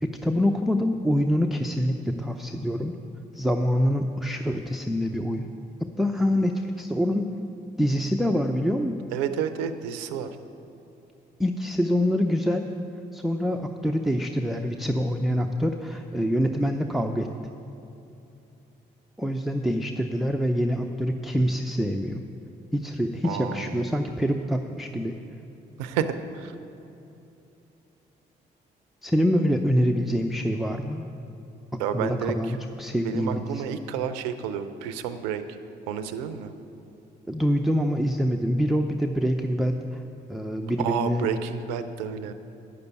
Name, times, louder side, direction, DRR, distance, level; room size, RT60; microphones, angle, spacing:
voice 1, 0.0-2.9 3.3-5.5 6.0-7.3 7.8-9.0 11.4-12.7 13.1-17.3 19.2-22.2 22.7-25.2 29.0-31.1 31.7-33.6 37.3-40.0 40.3-41.3, equal, ahead, 3 dB, 0.6 m, -25 dB
voice 2, 9.1-10.3 23.2-23.8 25.8-26.5 31.8-32.4 33.0-35.4 35.9-36.5 40.8-42.3, right 8 dB, 90° right, 10 dB, 0.5 m, -30 dB
9.6 x 6.9 x 8.2 m, 2.8 s
hypercardioid pair, 45°, 21 cm